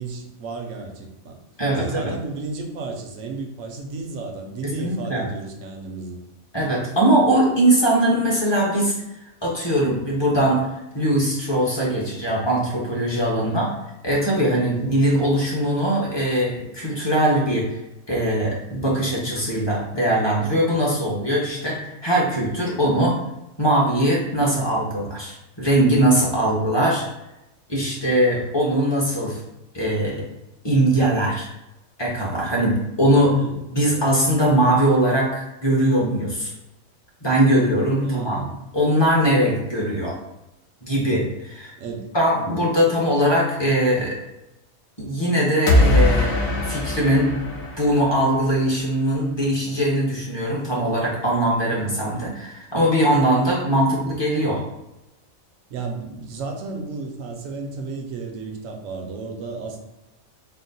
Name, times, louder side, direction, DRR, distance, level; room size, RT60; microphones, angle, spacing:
voice 1, 0.0-1.4 1.7-6.2 13.3-13.6 14.7-14.9 24.4-24.7 33.3-33.6 38.0-38.5 41.8-42.1 42.3-42.5 51.7-52.0 55.7-59.8, right 3 dB, 70° right, 2 dB, 1.0 m, -33 dB
voice 2, 1.6-2.1 4.6-5.2 6.5-8.9 9.4-10.6 10.9-13.7 14.0-17.7 18.1-23.2 23.6-27.0 27.7-29.4 29.7-30.2 30.6-31.5 32.0-33.3 33.7-36.5 37.2-38.4 38.7-40.2 40.8-41.7 42.1-44.2 45.0-47.3 47.8-54.6, right 1 dB, 20° left, -5 dB, 0.8 m, -21 dB
sound 1, 45.7-48.6, left 1 dB, 75° left, 1.2 m, -20 dB
4.3 x 2.1 x 4.0 m, 0.91 s
omnidirectional pair, 1.5 m